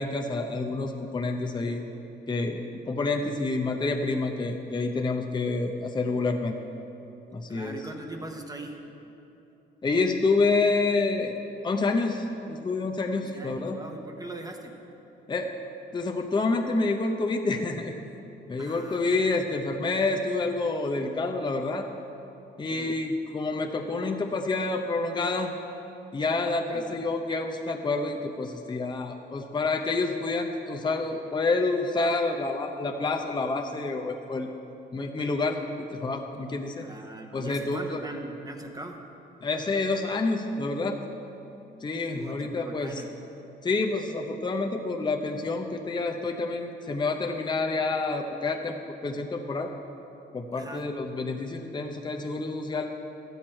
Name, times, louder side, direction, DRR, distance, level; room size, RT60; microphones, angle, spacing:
voice 1, 0.0-1.8 2.3-6.6 7.3-7.8 9.8-11.4 11.6-13.8 15.3-15.6 15.9-17.9 18.5-21.9 22.6-25.5 26.1-34.5 34.9-36.8 37.3-38.0 39.4-41.0 41.8-43.0 43.6-49.7 50.3-52.9, left 3 dB, 20° left, 3 dB, 0.7 m, -28 dB
voice 2, 7.5-8.8 13.1-14.8 18.6-19.2 22.6-23.0 26.7-27.0 36.8-39.0 42.0-43.1 50.5-50.9, right 2 dB, 20° right, 3 dB, 1.0 m, -41 dB
12.5 x 8.0 x 4.4 m, 2.9 s
cardioid pair, 90°, 20 cm